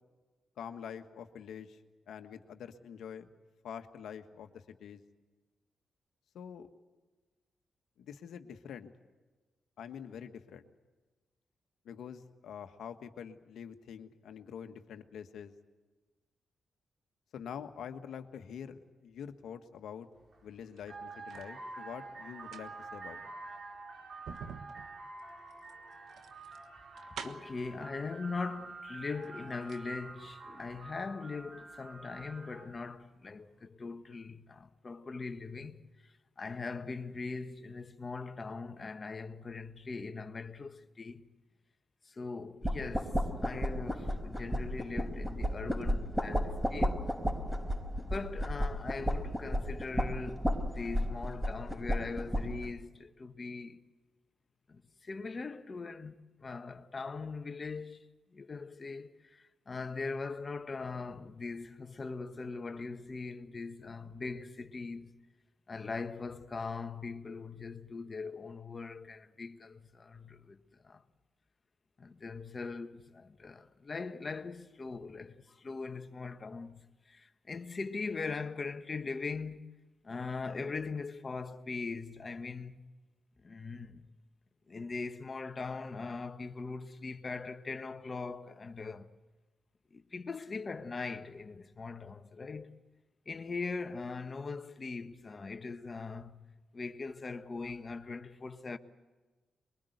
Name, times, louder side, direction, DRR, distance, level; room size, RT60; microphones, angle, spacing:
voice 1, 0.6-1.8 2.1-3.3 3.6-5.0 6.3-6.7 8.0-8.9 9.8-10.6 11.8-15.5 17.3-20.1 20.4-23.2, left 8 dB, 75° left, 1.5 m, -46 dB
sound 1, 20.2-20.4 20.8-32.9, right 3 dB, 60° right, 3.4 m, -48 dB
sound 2, 20.6-21.6 22.3-27.7 28.6-28.7 29.1-29.9 30.2-30.3, right 6 dB, 75° right, 1.3 m, -49 dB
voice 2, 27.2-41.3 42.0-47.1 48.0-50.5 50.7-53.8 54.7-58.0 58.3-65.2 65.7-70.6 70.8-71.0 72.0-79.6 80.0-82.9 83.4-84.0 84.7-89.1 89.9-92.7 93.3-98.8, left 4 dB, 45° left, 1.4 m, -41 dB
sound 3, 42.6-52.7, equal, 10° right, 4.5 m, -33 dB
23.5 x 22.5 x 8.1 m
supercardioid pair, 50°, 0 cm